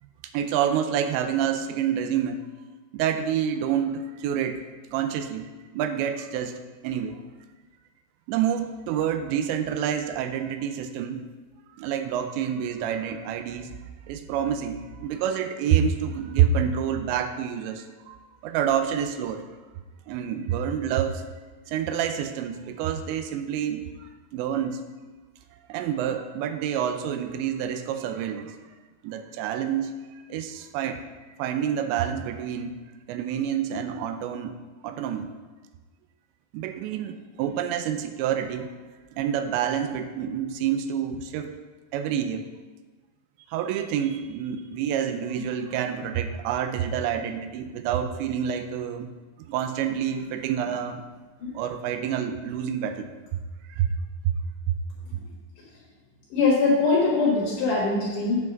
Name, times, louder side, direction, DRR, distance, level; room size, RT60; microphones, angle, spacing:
voice 1, 0.3-2.5 2.9-4.6 4.9-7.2 8.3-11.3 11.7-13.7 14.1-18.2 18.4-19.4 20.1-21.3 21.7-24.8 25.7-28.6 29.0-31.1 31.4-32.8 33.1-34.6 34.8-35.3 36.5-38.7 39.2-41.6 41.9-42.5 43.5-49.1 49.5-51.1 51.5-53.4 53.7-53.9 54.2-54.3, right 9 dB, 85° right, 8 dB, 2.8 m, -28 dB
voice 2, 56.3-58.4, left 3 dB, 60° left, -4 dB, 2.4 m, -22 dB
8.0 x 4.8 x 6.0 m, 1.4 s
omnidirectional pair, 5.2 m